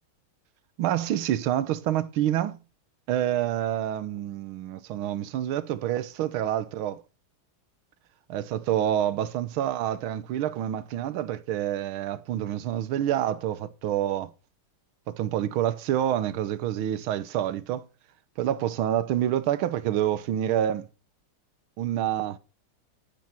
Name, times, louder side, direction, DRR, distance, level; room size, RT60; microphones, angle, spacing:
voice 1, 0.8-2.6 3.1-7.0 8.3-14.3 15.1-17.9 18.4-20.9 21.8-22.4, right 11 dB, 85° right, 1.7 m, -27 dB
10.0 x 9.1 x 4.4 m
omnidirectional pair, 2.2 m